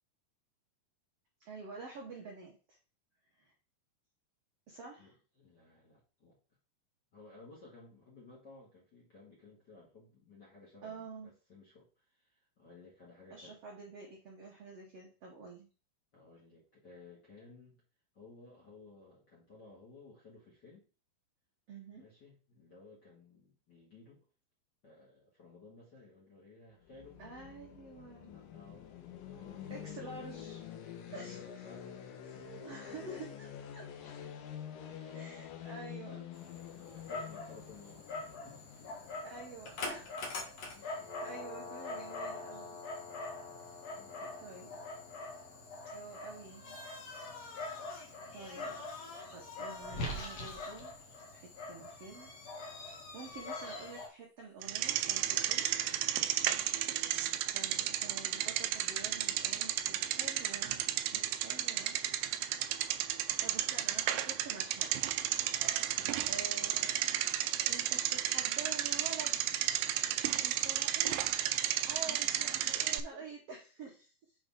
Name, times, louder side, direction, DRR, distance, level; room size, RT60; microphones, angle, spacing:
voice 1, 1.4-2.8 3.4-3.5 4.7-5.1 10.8-11.3 13.3-15.7 21.7-22.0 27.2-28.4 29.7-30.7 31.1-31.4 32.2-34.1 35.1-36.3 37.1-37.2 39.2-40.1 40.8-42.8 43.6-43.7 44.4-44.7 45.9-46.8 48.3-48.8 49.3-50.9 51.3-52.3 52.8-55.8 57.5-60.8 61.1-62.0 63.4-64.9 66.2-67.2 67.6-69.6 70.4-71.4 71.8-74.4, right 4 dB, 65° right, -2 dB, 1.6 m, -48 dB
voice 2, 5.0-6.4 7.1-13.6 16.1-17.8 18.1-20.9 21.9-24.2 24.8-27.2 28.2-29.0 29.3-30.1 31.0-32.0 32.3-33.1 34.9-35.2 36.7-39.0 40.7-41.1 41.4-41.7 43.9-44.4 56.4-56.8 65.9-66.3 72.1-73.4, left 3 dB, 35° left, -4 dB, 2.0 m, -57 dB
sound 1, 26.8-40.7, left 9 dB, 75° left, 2.3 m, -48 dB
Dog, 36.3-54.1, left 2 dB, 50° left, 2.3 m, -43 dB
Bicycle, 54.6-73.0, right 12 dB, 85° right, 1.9 m, -33 dB
7.0 x 5.3 x 3.7 m, 0.35 s
omnidirectional pair, 4.5 m